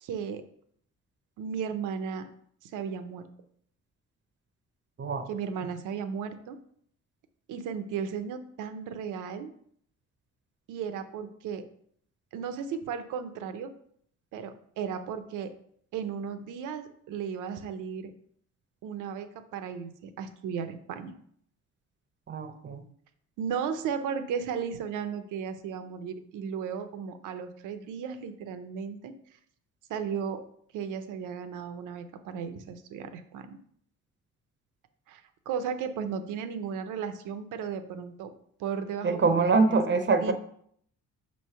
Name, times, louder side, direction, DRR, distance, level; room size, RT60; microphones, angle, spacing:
voice 1, 0.0-0.4 1.4-2.3 2.6-3.3 5.3-6.6 7.5-9.5 10.7-11.7 12.3-13.7 14.3-15.5 15.9-18.1 18.8-21.1 23.4-29.1 29.9-30.4 30.7-33.6 35.1-35.2 35.5-38.3 38.6-40.3, right 7 dB, 90° right, 9 dB, 0.7 m, -35 dB
voice 2, 5.0-5.3 22.3-22.8 39.0-40.3, right 4 dB, 40° right, 8 dB, 0.6 m, -24 dB
5.3 x 3.2 x 5.5 m, 0.65 s
cardioid pair, 90°, 30 cm